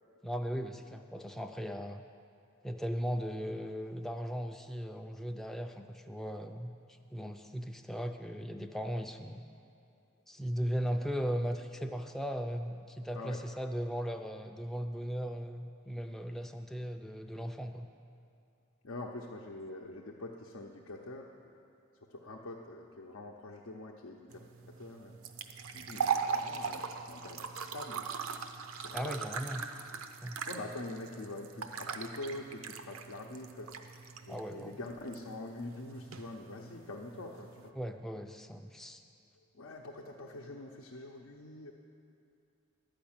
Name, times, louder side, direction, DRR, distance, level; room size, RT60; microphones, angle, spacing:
voice 1, 0.2-2.0 2.6-6.7 7.1-9.4 10.3-17.9 28.9-29.7 30.2-30.4 34.3-34.8 37.8-39.0, equal, ahead, 4 dB, 0.3 m, -37 dB
voice 2, 18.8-21.3 22.1-24.4 24.8-25.2 25.7-28.1 28.7-29.3 30.5-33.7 34.3-37.8 39.5-41.7, left 2 dB, 85° left, -1 dB, 0.7 m, -44 dB
sound 1, 24.3-37.7, right 6 dB, 85° right, 0.6 m, -40 dB
11.5 x 5.2 x 8.8 m, 2.5 s
head